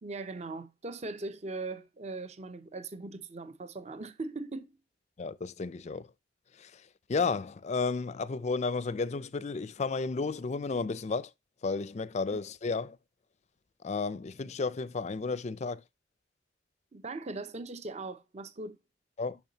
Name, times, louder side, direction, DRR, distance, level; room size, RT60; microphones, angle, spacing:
voice 1, 0.0-4.7 16.9-18.8, right 3 dB, 35° right, 0.7 m, -40 dB
voice 2, 5.2-6.1 6.6-6.8 7.1-11.3 11.6-13.0 13.8-15.8 19.2-19.4, left 4 dB, 40° left, 0.4 m, -32 dB
7.0 x 6.1 x 2.8 m
head